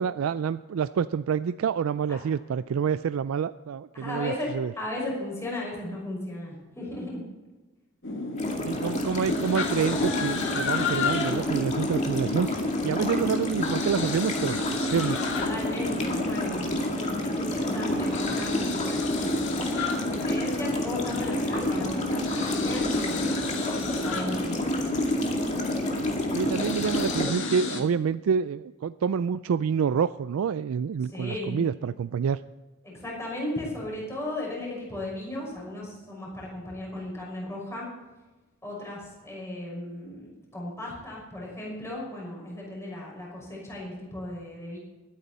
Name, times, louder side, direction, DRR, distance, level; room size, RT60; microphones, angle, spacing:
voice 1, 0.0-4.7 8.7-12.5 12.8-15.2 26.3-32.4, right 6 dB, 80° right, 14 dB, 0.3 m, -27 dB
voice 2, 3.9-7.2 15.3-16.7 16.9-19.7 20.0-23.3 23.9-24.6 31.1-31.6 32.8-37.9 38.6-44.8, left 1 dB, 15° left, -4 dB, 5.8 m, -36 dB
sound 1, 8.0-27.8, left 3 dB, 60° left, 1.9 m, -32 dB
sound 2, 8.4-27.2, left 1 dB, 35° left, 2.2 m, -30 dB
21.5 x 9.4 x 4.2 m, 1.2 s
head